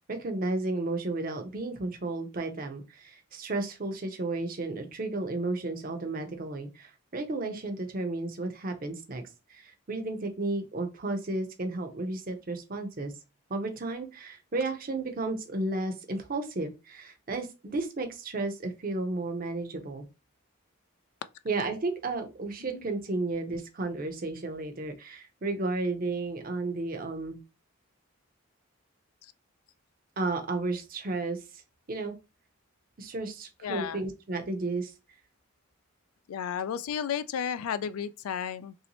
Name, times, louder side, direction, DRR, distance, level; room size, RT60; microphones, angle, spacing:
voice 1, 0.1-9.2 9.5-13.1 13.5-20.0 21.5-27.4 30.2-31.6 31.9-32.1 33.0-34.9, right 2 dB, 40° right, 0.6 m, -33 dB
voice 2, 33.6-34.0 36.3-38.7, left 8 dB, 80° left, 0.3 m, -33 dB
3.0 x 2.7 x 2.9 m
head